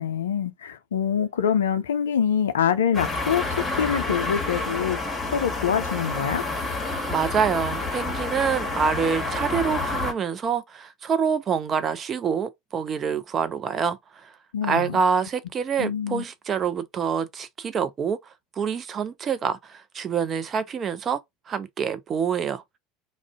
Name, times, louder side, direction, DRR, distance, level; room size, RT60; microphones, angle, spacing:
voice 1, 0.0-6.4 14.5-15.0 15.8-16.2, left 8 dB, 70° left, 0.3 m, -25 dB
sound 1, 2.9-10.1, left 2 dB, 15° left, 1.1 m, -29 dB
voice 2, 7.1-14.4 14.6-21.2 21.5-22.6, right 6 dB, 35° right, 0.4 m, -26 dB
2.4 x 2.1 x 3.5 m
figure-of-eight pair, 70°, 0 cm